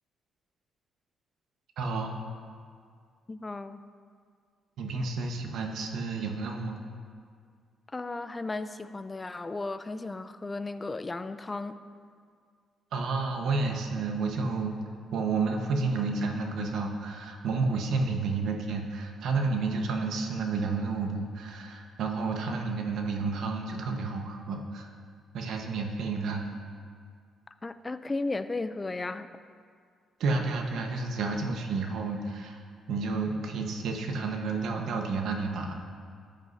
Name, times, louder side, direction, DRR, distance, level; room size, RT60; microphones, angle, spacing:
voice 1, 1.8-2.2 4.8-6.8 12.9-14.8 15.1-24.9 25.3-26.4 30.2-32.6 32.9-35.7, right 4 dB, 75° right, 3 dB, 1.1 m, -30 dB
voice 2, 3.3-3.8 7.9-11.8 27.6-29.3, left 3 dB, 25° left, 11 dB, 0.4 m, -35 dB
13.5 x 8.9 x 2.7 m, 2.1 s
cardioid pair, 90°, 0 cm